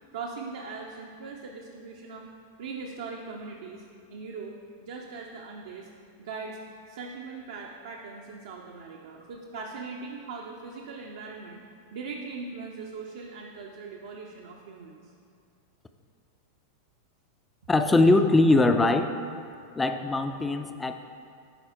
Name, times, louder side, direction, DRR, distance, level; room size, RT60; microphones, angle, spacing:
voice 1, 0.1-2.3 2.6-5.9 6.2-6.6 6.9-11.7 11.9-15.1, right 4 dB, 60° right, -1 dB, 0.6 m, -40 dB
voice 2, 17.7-19.1 19.8-20.9, left 2 dB, 10° left, 8 dB, 0.4 m, -21 dB
11.0 x 4.0 x 4.3 m, 2.4 s
figure-of-eight pair, 90°, 0 cm